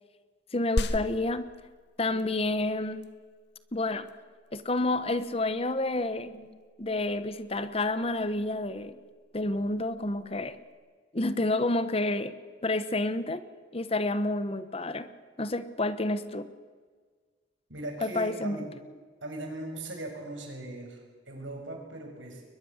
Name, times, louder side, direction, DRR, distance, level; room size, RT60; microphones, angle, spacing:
voice 1, 0.5-1.5 2.0-3.0 3.7-4.1 4.5-9.0 9.3-10.6 11.1-12.3 12.6-13.4 13.7-15.1 15.4-16.5 18.0-18.6, left 2 dB, 30° left, 13 dB, 1.0 m, -29 dB
sound 1, 0.8-10.7, left 1 dB, 60° left, 1.2 m, -40 dB
voice 2, 17.7-18.6 19.2-22.4, right 2 dB, 85° right, 2 dB, 6.4 m, -39 dB
22.0 x 21.0 x 7.2 m, 1.5 s
head